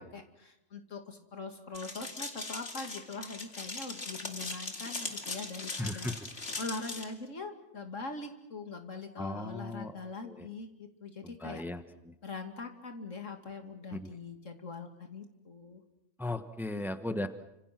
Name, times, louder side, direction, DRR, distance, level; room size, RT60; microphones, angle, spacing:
voice 1, 0.0-6.1 6.6-11.6 12.2-15.8 16.7-17.3, left 3 dB, 85° left, 5 dB, 2.8 m, -42 dB
sound 1, 1.7-7.0, left 3 dB, 55° left, 2.7 m, -40 dB
voice 2, 5.8-6.2 9.2-10.5 11.2-12.1 13.9-14.1 16.2-17.3, left 1 dB, ahead, 8 dB, 1.1 m, -37 dB
29.5 x 26.5 x 6.1 m, 0.91 s
omnidirectional pair, 1.3 m